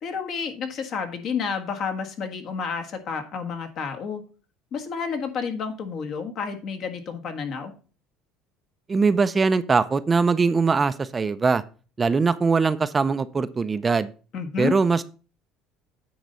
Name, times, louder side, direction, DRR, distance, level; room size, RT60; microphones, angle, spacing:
voice 1, 0.0-4.2 4.7-7.7 14.3-14.7, left 6 dB, 55° left, 5 dB, 1.6 m, -30 dB
voice 2, 8.9-11.6 12.0-14.1 14.6-15.0, right 4 dB, 25° right, 13 dB, 0.5 m, -21 dB
9.3 x 4.0 x 5.5 m, 0.36 s
supercardioid pair, 90°, 0 cm